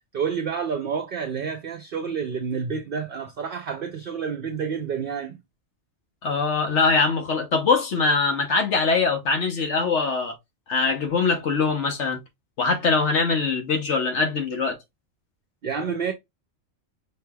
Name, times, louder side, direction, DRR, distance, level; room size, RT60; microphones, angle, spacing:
voice 1, 0.1-5.4 15.6-16.1, right 6 dB, 55° right, 0.8 m, -29 dB
voice 2, 6.2-10.4 10.7-12.2 12.6-14.8, left 4 dB, 65° left, 1.2 m, -22 dB
5.4 x 3.1 x 2.2 m
omnidirectional pair, 1.3 m